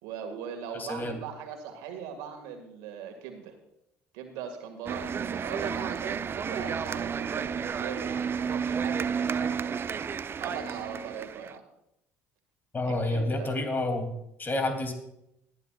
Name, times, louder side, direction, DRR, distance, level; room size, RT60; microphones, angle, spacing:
voice 1, 0.0-3.5 4.1-9.8 10.4-11.6 12.8-13.5, right 7 dB, 70° right, 5 dB, 2.0 m, -40 dB
voice 2, 0.7-1.2 12.7-14.1 14.4-14.9, left 2 dB, 30° left, 6 dB, 2.9 m, -29 dB
sound 1, 4.9-11.6, right 6 dB, 35° right, 0.5 m, -31 dB
19.5 x 11.5 x 2.4 m, 0.82 s
hypercardioid pair, 60°, 7 cm